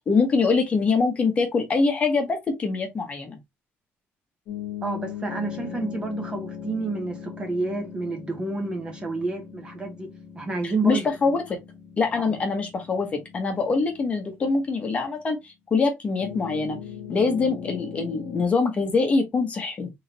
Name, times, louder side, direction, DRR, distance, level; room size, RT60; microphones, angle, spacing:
voice 1, 0.1-3.4 10.6-11.6 12.0-16.8 17.1-19.9, left 4 dB, 30° left, 1.0 m, -24 dB
sound 1, 4.5-15.2 16.2-18.5, left 8 dB, 80° left, 1.2 m, -39 dB
voice 2, 4.8-10.1 10.3-11.1, right 3 dB, 20° right, 1.1 m, -29 dB
3.5 x 3.5 x 2.8 m
cardioid pair, 165°, 5 cm